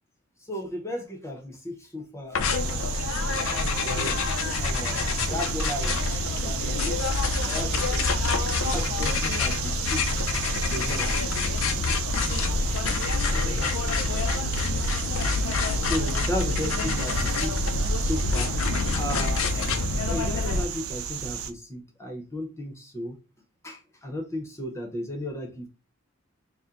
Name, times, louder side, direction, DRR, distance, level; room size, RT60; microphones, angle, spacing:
voice 1, 0.4-3.2 3.6-8.0 8.7-10.3 10.7-11.4 12.5-12.7 13.2-14.3 14.5-17.6 18.0-23.2 23.6-25.7, left 1 dB, 15° left, 0.8 m, -36 dB
sound 1, 2.3-20.7, left 3 dB, 75° left, 0.5 m, -27 dB
sound 2, 2.5-21.5, right 8 dB, 85° right, 0.5 m, -33 dB
4.2 x 2.1 x 3.7 m
head